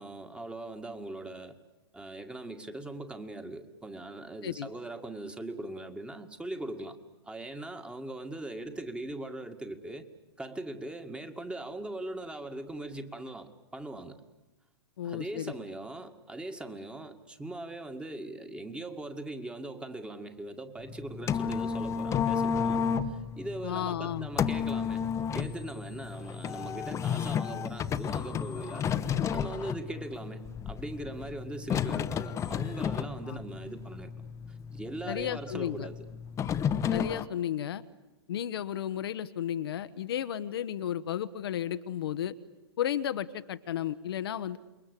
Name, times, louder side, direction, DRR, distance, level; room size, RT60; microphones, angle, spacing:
voice 1, 0.0-1.6 1.9-7.0 7.2-10.1 10.4-14.2 15.0-22.8 23.1-25.0 25.3-28.8 29.3-34.1 34.5-36.0, right 2 dB, 5° right, 8 dB, 2.0 m, -40 dB
voice 2, 15.0-15.5 23.6-24.3 33.3-33.4 35.1-35.9 36.9-37.8 38.3-42.3 42.8-44.6, left 10 dB, 65° left, 11 dB, 1.2 m, -33 dB
sound 1, 20.8-37.2, left 7 dB, 20° left, 1.1 m, -32 dB
28.0 x 22.5 x 8.4 m, 1.0 s
hypercardioid pair, 115°, 14 cm